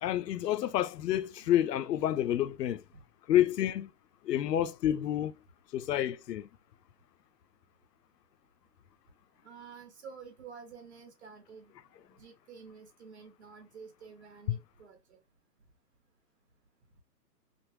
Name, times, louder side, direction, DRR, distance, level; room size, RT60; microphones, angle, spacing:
voice 1, 0.0-2.8 3.3-3.9 4.2-5.3 5.7-6.5 14.5-14.6, left 12 dB, 75° left, 0.5 m, -29 dB
voice 2, 9.4-11.7 12.0-15.2, right 6 dB, 40° right, 1.1 m, -50 dB
3.4 x 2.0 x 3.0 m
hypercardioid pair, 165°, 49 cm